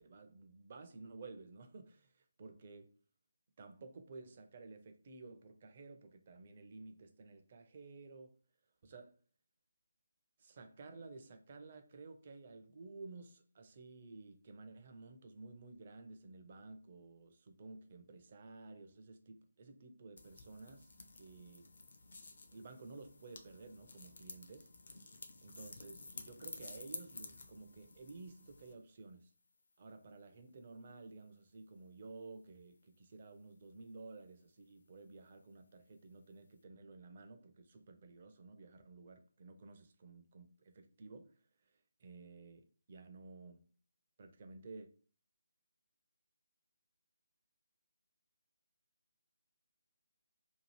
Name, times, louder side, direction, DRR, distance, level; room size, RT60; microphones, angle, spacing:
voice 1, 0.0-2.9 3.6-8.4 8.8-9.2 10.4-21.7 22.5-24.7 25.4-29.3 29.8-41.4 41.7-43.7 44.2-44.9, right 3 dB, 35° right, 0.5 m, -54 dB
sound 1, 20.2-28.7, left 3 dB, 55° left, 0.6 m, -52 dB
2.8 x 2.4 x 3.1 m
figure-of-eight pair, 150°, 0 cm